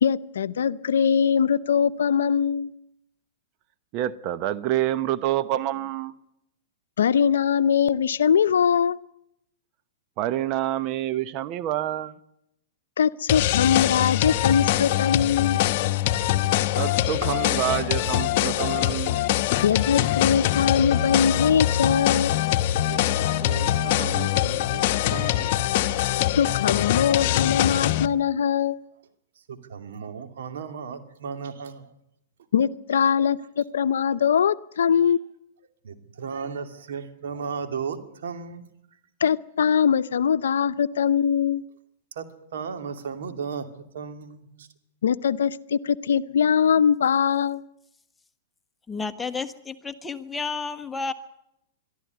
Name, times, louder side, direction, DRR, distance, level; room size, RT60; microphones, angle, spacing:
voice 1, 0.0-2.7 7.0-9.0 13.0-15.6 19.6-22.3 26.4-28.8 32.5-35.2 39.2-41.6 45.0-47.6, left 7 dB, 80° left, 0.7 m, -22 dB
voice 2, 3.9-6.1 10.2-12.1 16.8-19.2, right 13 dB, 45° right, 0.9 m, -27 dB
sound 1, 13.3-28.1, left 13 dB, 55° left, 0.9 m, -23 dB
voice 3, 22.8-26.2 27.0-27.1 27.6-27.7 29.5-31.9 32.9-33.0 35.0-35.1 35.8-38.6 42.2-42.3 42.5-43.7 43.9-44.7, right 6 dB, 70° right, 2.6 m, -35 dB
voice 4, 48.9-51.1, left 4 dB, 10° left, 1.3 m, -31 dB
23.0 x 13.5 x 9.5 m
hypercardioid pair, 120°, 0 cm